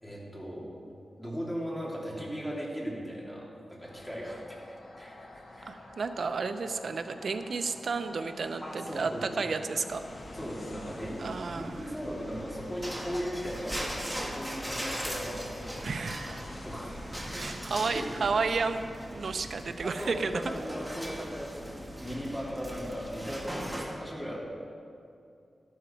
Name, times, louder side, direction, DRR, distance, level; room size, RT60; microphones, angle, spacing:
voice 1, 0.0-0.7 1.2-5.7 8.6-9.2 10.3-15.5 16.6-17.6 17.9-18.2 19.8-24.5, equal, 10° left, -4 dB, 2.8 m, -38 dB
sound 1, 3.8-17.3, left 2 dB, 65° left, 1.3 m, -49 dB
voice 2, 5.7-10.0 11.2-11.8 15.8-16.4 17.4-20.4, right 4 dB, 70° right, 9 dB, 0.6 m, -32 dB
sound 2, 9.9-23.8, equal, 10° right, 1.6 m, -40 dB
12.5 x 12.0 x 4.5 m, 2.5 s
wide cardioid pair, 120°, 0 cm